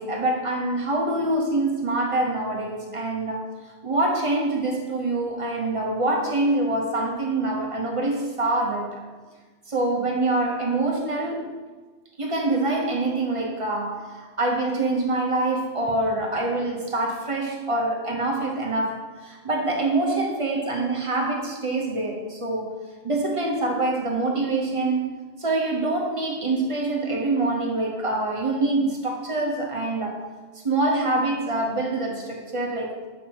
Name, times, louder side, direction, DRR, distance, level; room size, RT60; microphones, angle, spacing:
voice 1, 0.0-3.5 3.8-9.0 9.7-11.5 12.2-22.8 23.0-25.1 25.4-30.2 30.6-33.0, right 2 dB, 30° right, -1 dB, 1.0 m, -25 dB
8.1 x 5.5 x 3.0 m, 1.3 s
omnidirectional pair, 1.2 m